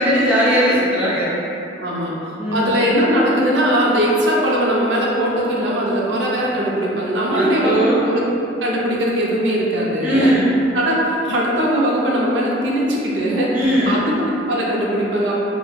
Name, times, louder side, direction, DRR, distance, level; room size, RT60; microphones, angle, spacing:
voice 1, 0.0-1.3 2.4-2.7 7.3-8.0 10.0-10.6 13.5-14.0, equal, 10° right, -10 dB, 0.6 m, -18 dB
voice 2, 1.8-2.1 2.5-8.3 8.6-10.3 10.7-15.4, equal, 85° right, -4 dB, 0.5 m, -20 dB
2.3 x 2.1 x 3.1 m, 2.9 s
head